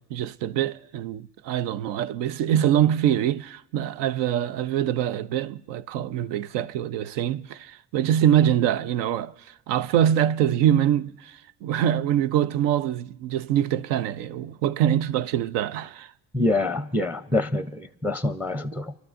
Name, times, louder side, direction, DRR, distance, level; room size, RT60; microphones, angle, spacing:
voice 1, 0.0-16.1, right 10 dB, 75° right, 0.6 m, -24 dB
voice 2, 16.3-18.9, left 2 dB, 5° right, 0.6 m, -26 dB
29.0 x 12.5 x 2.5 m
supercardioid pair, 75°, 43 cm